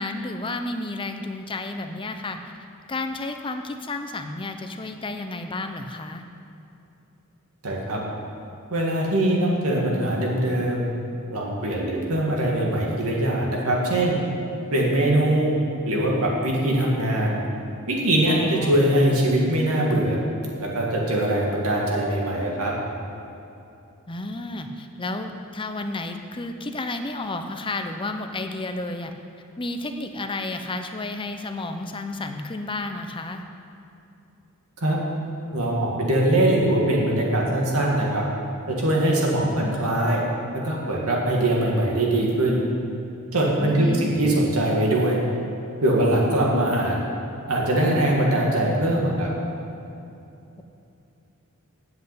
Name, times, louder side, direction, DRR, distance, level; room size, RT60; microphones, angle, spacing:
voice 1, 0.0-2.4 2.9-6.2 18.3-18.8 24.1-29.1 29.6-33.4 43.6-44.1, left 2 dB, 25° left, 6 dB, 0.7 m, -31 dB
voice 2, 7.6-8.0 8.7-10.9 11.3-14.2 14.7-15.5 15.9-17.4 17.9-20.2 20.6-22.7 34.8-35.0 35.5-38.2 38.7-40.2 40.6-42.6 43.3-45.2 45.8-47.0 47.5-49.3, right 1 dB, 80° right, -2 dB, 2.3 m, -22 dB
8.0 x 7.7 x 8.7 m, 2.8 s
head